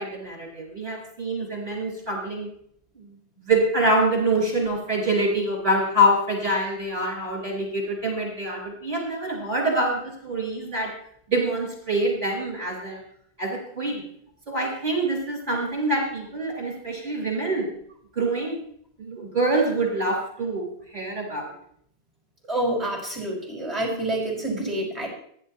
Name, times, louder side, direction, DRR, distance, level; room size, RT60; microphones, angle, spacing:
voice 1, 0.0-2.5 3.4-10.9 11.3-13.0 13.4-14.0 14.5-17.7 18.2-18.6 19.0-20.6 20.9-21.5, right 1 dB, 55° right, -2 dB, 6.0 m, -25 dB
voice 2, 22.5-25.1, right 1 dB, 30° right, -1 dB, 5.3 m, -27 dB
18.5 x 11.0 x 3.0 m, 0.65 s
omnidirectional pair, 1.0 m